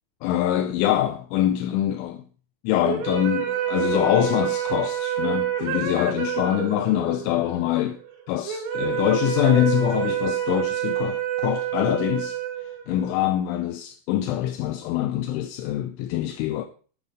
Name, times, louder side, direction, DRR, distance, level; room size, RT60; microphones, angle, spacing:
voice 1, 0.2-2.3 2.6-8.0 8.3-12.4 12.9-16.7, left 12 dB, 80° left, 3.1 m, -24 dB
sound 1, 2.8-13.3, right 10 dB, 85° right, 4.4 m, -28 dB
10.0 x 7.0 x 6.4 m
omnidirectional pair, 5.6 m